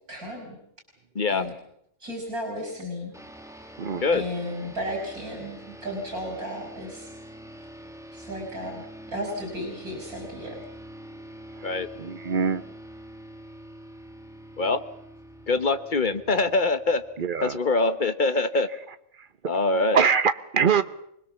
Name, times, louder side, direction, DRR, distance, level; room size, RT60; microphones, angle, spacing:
voice 1, 0.1-0.5 1.3-1.5 2.0-3.1 3.5-3.7 4.1-7.1 8.1-8.8 9.1-10.6, equal, 85° right, 1 dB, 5.0 m, -34 dB
sound 1, 3.1-17.9, right 1 dB, ahead, 1.7 m, -45 dB
voice 2, 11.6-12.6 17.2-17.6 19.2-19.5 19.9-20.8, right 6 dB, 40° right, 12 dB, 1.1 m, -24 dB
voice 3, 15.5-17.0 17.4-18.7 19.5-20.0, left 3 dB, 35° left, 10 dB, 1.4 m, -23 dB
25.0 x 20.5 x 7.1 m, 0.72 s
omnidirectional pair, 1.5 m